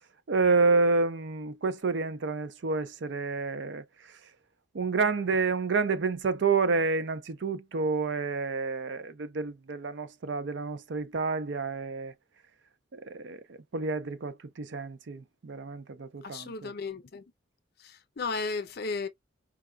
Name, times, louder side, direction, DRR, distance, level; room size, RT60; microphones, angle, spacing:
voice 1, 0.3-3.8 4.7-12.1 12.9-16.7, right 4 dB, 60° right, 0.5 m, -29 dB
voice 2, 16.2-17.2 17.8-19.1, left 4 dB, 50° left, 0.6 m, -34 dB
4.7 x 2.2 x 2.2 m
head